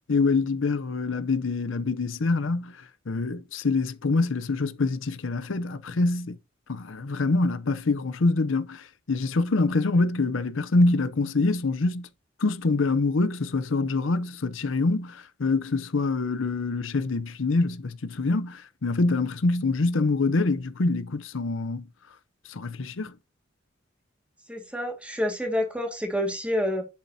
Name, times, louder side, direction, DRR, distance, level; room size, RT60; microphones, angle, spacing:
voice 1, 0.1-2.7 3.1-6.4 6.7-12.1 12.4-21.8 22.5-23.1, left 3 dB, 90° left, 0.7 m, -25 dB
voice 2, 24.5-26.8, left 1 dB, 5° right, 2.0 m, -28 dB
9.3 x 7.4 x 2.8 m
head